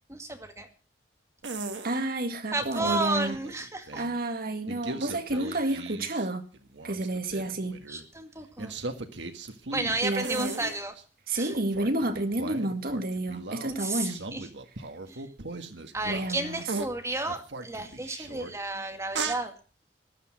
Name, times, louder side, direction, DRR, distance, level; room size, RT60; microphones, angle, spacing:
voice 1, 0.1-0.7 2.5-4.0 5.5-5.7 7.9-8.7 9.7-10.9 11.3-11.5 13.7-14.5 15.1-15.2 15.9-19.5, right 2 dB, 15° right, 2.2 m, -32 dB
sound 1, 1.4-2.0 2.6-4.2 4.7-6.3 6.5-8.0 8.6-11.0 11.5-16.4 16.7-16.9 17.3-18.5 19.1-19.4, right 3 dB, 85° right, 1.7 m, -38 dB
voice 2, 1.8-3.4 3.9-6.5 6.8-7.8 10.0-10.7 11.3-14.2 16.0-16.6, right 1 dB, 55° right, 2.1 m, -30 dB
14.0 x 12.0 x 6.1 m
head